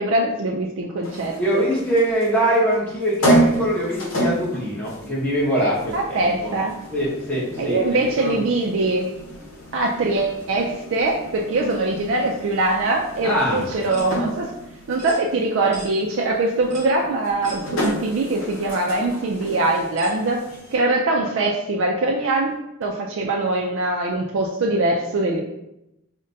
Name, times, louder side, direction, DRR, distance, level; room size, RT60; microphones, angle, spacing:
voice 1, 0.0-1.6 5.9-6.7 7.6-9.1 9.7-14.5 14.9-20.4 20.7-25.4, right 2 dB, 65° right, -1 dB, 0.3 m, -22 dB
sound 1, 1.0-20.8, equal, 70° left, 0.8 m, -30 dB
voice 2, 1.3-6.5 6.9-8.5 13.2-13.6, right 1 dB, 5° left, -7 dB, 0.9 m, -23 dB
sound 2, 13.9-14.1 15.0-15.2 15.7-15.9 16.7-16.9 17.4-17.6 18.5-18.6 20.0-20.2, right 2 dB, 35° right, 0.9 m, -39 dB
5.0 x 2.1 x 2.6 m, 0.88 s
head